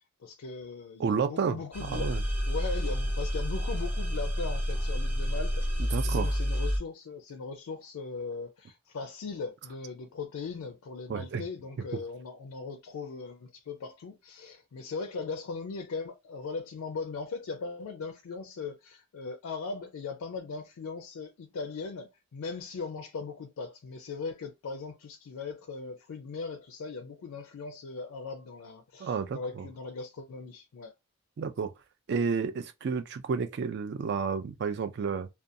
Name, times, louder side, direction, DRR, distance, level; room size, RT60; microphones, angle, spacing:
voice 1, 0.2-30.9, left 4 dB, 80° left, 0.4 m, -39 dB
voice 2, 1.0-1.6 1.9-2.2 5.9-6.3 11.1-11.4 29.0-29.4 31.4-31.7 32.1-35.3, right 5 dB, 50° right, 0.3 m, -30 dB
sound 1, 1.7-6.8, equal, 10° right, 0.8 m, -29 dB
2.5 x 2.2 x 2.6 m
head